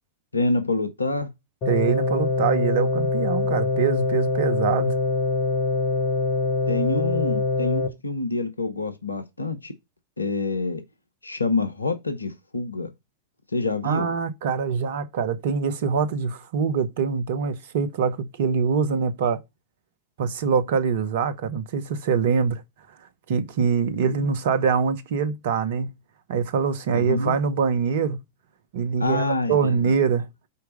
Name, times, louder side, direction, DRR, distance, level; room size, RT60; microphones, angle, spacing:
voice 1, 0.3-1.3 6.7-9.7 10.2-10.8 11.2-12.9 13.5-14.1 24.1-24.3 26.9-27.3 29.0-29.9, left 3 dB, 80° left, 0.8 m, -27 dB
sound 1, 1.6-7.9, left 3 dB, 45° left, 2.6 m, -24 dB
voice 2, 1.7-4.9 13.8-19.4 20.2-22.6 23.3-25.9 26.3-28.2 28.7-30.3, right 6 dB, 55° right, 0.8 m, -24 dB
5.6 x 4.5 x 5.2 m
figure-of-eight pair, 90°, 0 cm